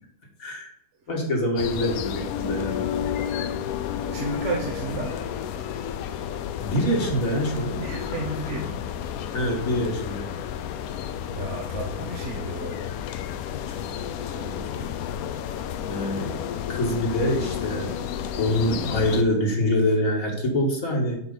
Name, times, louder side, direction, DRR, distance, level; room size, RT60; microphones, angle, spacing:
voice 1, 1.1-2.9 6.6-7.8 9.3-10.3 13.7-14.8 15.9-18.0 18.4-21.2, left 1 dB, 55° left, 1 dB, 1.9 m, -25 dB
sound 1, 1.6-19.2, left 9 dB, 70° left, 1.0 m, -31 dB
voice 2, 3.9-5.3 7.8-8.8 11.2-12.8, right 3 dB, 50° right, -1 dB, 1.3 m, -33 dB
9.6 x 4.6 x 3.8 m, 0.76 s
omnidirectional pair, 1.8 m